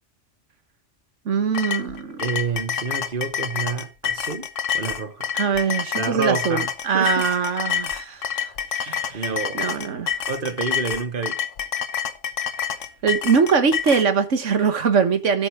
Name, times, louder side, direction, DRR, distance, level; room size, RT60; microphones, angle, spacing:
voice 1, 1.2-2.2 5.3-9.3 9.5-10.1 13.0-15.5, right 6 dB, 85° right, 1.7 m, -22 dB
sound 1, 1.5-14.1, left 8 dB, 90° left, 1.4 m, -28 dB
voice 2, 2.2-4.5 4.7-5.3 5.9-7.3 8.9-9.7 10.3-11.4, right 5 dB, 45° right, 1.6 m, -28 dB
13.0 x 9.0 x 3.6 m
omnidirectional pair, 1.2 m